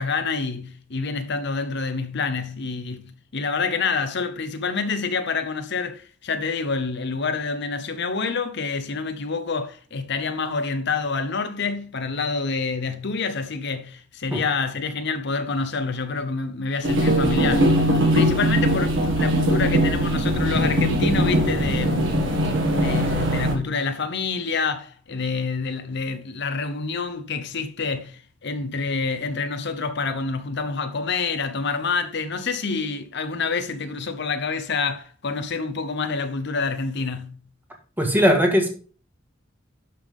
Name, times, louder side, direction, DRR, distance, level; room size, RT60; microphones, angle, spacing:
voice 1, 0.0-22.3 22.7-37.4, left 4 dB, 60° left, 0.9 m, -27 dB
sound 1, 16.8-23.5, equal, 70° right, 1.9 m, -21 dB
voice 2, 38.0-38.7, equal, 10° right, 1.8 m, -19 dB
11.5 x 5.6 x 3.6 m
head